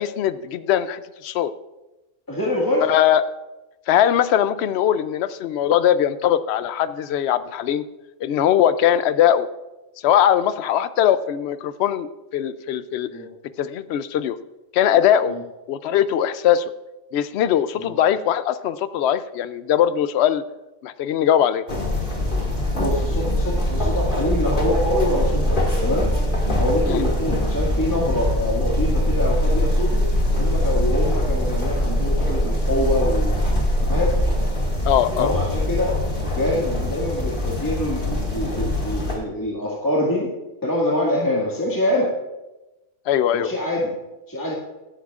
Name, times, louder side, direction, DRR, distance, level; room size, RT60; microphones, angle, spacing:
voice 1, 0.0-1.5 2.8-3.2 3.9-7.8 8.2-9.5 10.0-13.1 13.6-14.4 14.7-15.4 15.7-16.7 17.1-20.4 20.8-21.6 26.9-27.0 34.8-35.3 43.1-43.5, left 10 dB, 70° left, 14 dB, 0.8 m, -20 dB
voice 2, 2.3-2.9 13.1-13.3 15.2-15.4 17.8-18.0 22.7-26.1 26.6-30.0 30.4-33.3 33.8-34.2 35.2-35.9 36.4-40.3 40.6-42.1 43.3-43.9 44.3-44.5, left 1 dB, 15° left, -5 dB, 1.9 m, -25 dB
sound 1, 21.7-39.1, left 1 dB, 45° left, 2.4 m, -22 dB
17.0 x 9.9 x 2.4 m, 1.0 s
omnidirectional pair, 1.2 m